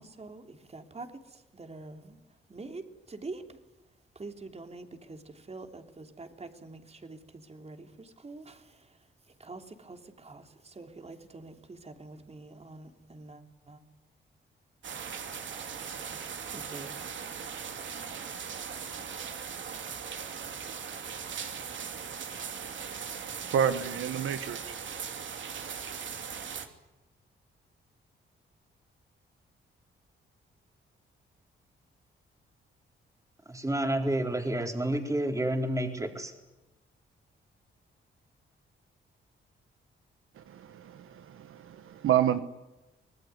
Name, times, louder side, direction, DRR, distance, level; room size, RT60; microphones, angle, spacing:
voice 1, 0.0-3.6 4.1-13.8 16.1-17.0, right 3 dB, 30° right, 6 dB, 3.3 m, -46 dB
sound 1, 14.8-26.7, right 7 dB, 65° right, 2.8 m, -39 dB
voice 2, 23.5-24.6 40.4-42.4, right 9 dB, 80° right, 11 dB, 1.3 m, -29 dB
voice 3, 33.5-36.3, right 1 dB, 15° right, 4 dB, 4.1 m, -29 dB
25.5 x 19.5 x 9.7 m, 1.0 s
cardioid pair, 90°, 21 cm